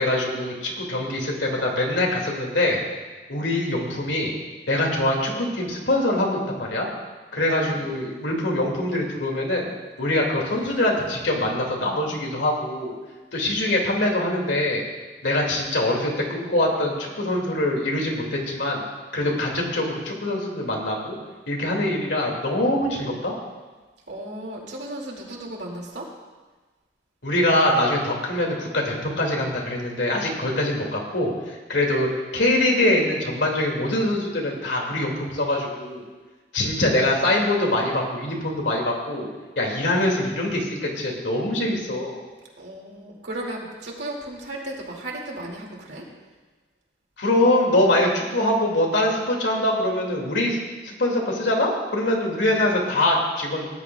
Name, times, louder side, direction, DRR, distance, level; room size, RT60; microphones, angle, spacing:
voice 1, 0.0-2.8 3.3-4.3 4.7-6.9 7.3-9.7 10.0-12.9 13.3-14.8 15.2-18.8 19.1-21.2 21.5-23.3 27.2-36.0 36.5-39.3 39.6-42.2 47.2-50.6 50.8-53.7, left 1 dB, 80° left, 0 dB, 2.3 m, -23 dB
voice 2, 24.1-26.1 42.6-46.0, right 1 dB, 70° right, -1 dB, 2.3 m, -35 dB
18.0 x 10.5 x 2.3 m, 1.3 s
head